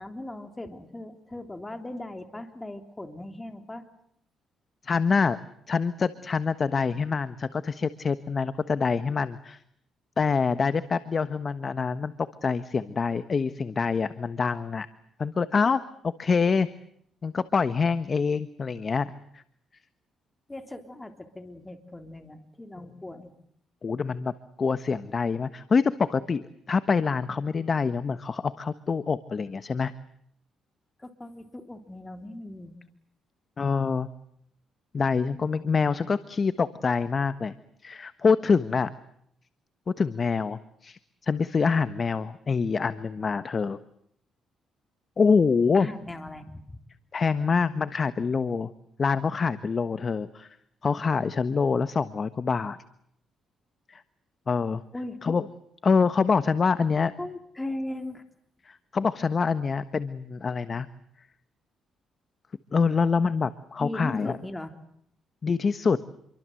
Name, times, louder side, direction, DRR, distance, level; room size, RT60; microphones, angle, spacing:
voice 1, 0.0-3.9 20.5-23.3 31.0-32.8 45.7-46.8 54.9-55.2 57.2-58.2 63.8-64.7, left 1 dB, 15° left, 7 dB, 3.4 m, -38 dB
voice 2, 4.8-5.4 5.7-9.6 10.2-14.9 15.2-16.7 17.2-19.4 23.8-24.3 24.6-29.9 33.6-34.1 34.9-37.5 37.8-38.9 39.9-43.8 45.2-45.9 47.1-48.7 49.0-50.5 50.8-52.8 53.9-54.0 54.5-54.8 55.2-55.4 55.8-57.1 58.6-60.9 62.7-64.4 65.4-66.0, left 5 dB, 40° left, 13 dB, 1.3 m, -25 dB
28.5 x 24.0 x 7.8 m, 0.70 s
cardioid pair, 90°, 0 cm